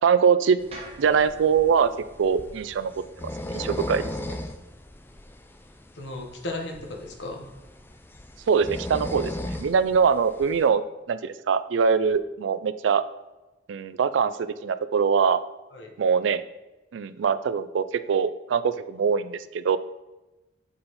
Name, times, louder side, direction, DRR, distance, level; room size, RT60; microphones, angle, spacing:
voice 1, 0.0-0.6 1.0-1.9 2.2-3.0 3.5-4.0 8.5-10.8 11.1-13.0 13.7-15.4 16.0-16.4 16.9-19.8, right 6 dB, 80° right, 14 dB, 0.4 m, -23 dB
sound 1, 0.6-10.7, left 1 dB, 10° left, 0.4 m, -38 dB
sound 2, 0.7-4.9, right 2 dB, 30° right, 1.2 m, -49 dB
voice 2, 5.9-7.5 15.7-15.9, left 2 dB, 70° left, 2 dB, 1.1 m, -35 dB
7.7 x 4.2 x 4.0 m, 1.0 s
head